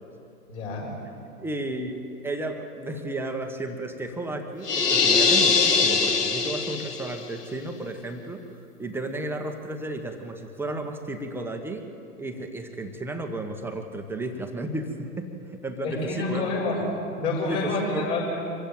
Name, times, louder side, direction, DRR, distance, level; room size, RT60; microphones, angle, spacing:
voice 1, 0.5-0.9 15.8-16.9 17.2-18.4, left 3 dB, 45° left, -3 dB, 7.2 m, -28 dB
voice 2, 1.4-8.4 8.8-11.9 12.2-16.5 17.5-18.1, right 2 dB, 5° right, 4 dB, 1.3 m, -33 dB
sound 1, 4.6-7.2, left 4 dB, 90° left, 1.3 m, -22 dB
25.0 x 15.0 x 8.0 m, 2.7 s
hypercardioid pair, 120°, 46 cm